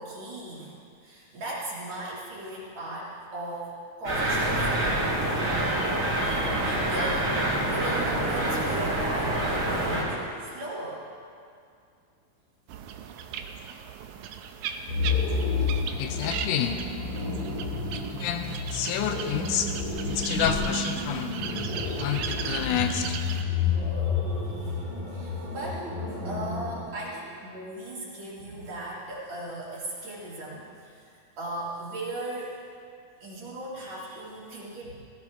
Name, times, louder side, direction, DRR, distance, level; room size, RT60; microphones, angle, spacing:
voice 1, 0.0-4.9 5.3-5.6 6.3-11.0 12.8-12.9 24.0-32.6 33.2-35.0, right 1 dB, 60° right, -7 dB, 3.8 m, -38 dB
sound 1, 4.0-10.0, right 1 dB, 25° right, 3.3 m, -26 dB
sound 2, 12.7-23.4, right 7 dB, 85° right, 2.1 m, -38 dB
sound 3, 14.9-26.8, left 4 dB, 65° left, 5.6 m, -30 dB
voice 2, 16.0-16.8 18.1-19.7 20.1-21.4 22.0-23.2, left 9 dB, 85° left, 7 dB, 2.2 m, -29 dB
18.5 x 14.5 x 3.5 m, 2.3 s
omnidirectional pair, 3.4 m